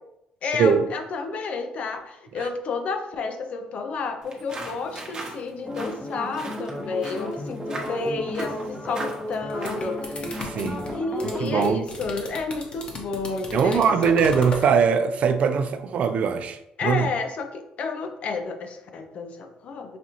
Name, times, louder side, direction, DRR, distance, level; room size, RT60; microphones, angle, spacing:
voice 1, 0.4-10.2 10.9-14.3 16.8-20.0, left 4 dB, 55° left, 6 dB, 0.6 m, -31 dB
sound 1, 4.2-10.7, right 2 dB, 30° right, 1.0 m, -39 dB
sound 2, 5.6-11.7, left 1 dB, ahead, 0.8 m, -34 dB
sound 3, 9.3-14.7, left 2 dB, 40° left, 0.9 m, -36 dB
voice 2, 10.4-11.0 11.4-11.9 13.5-17.1, right 6 dB, 55° right, 10 dB, 0.4 m, -22 dB
5.1 x 2.4 x 2.9 m, 0.83 s
cardioid pair, 90°, 3 cm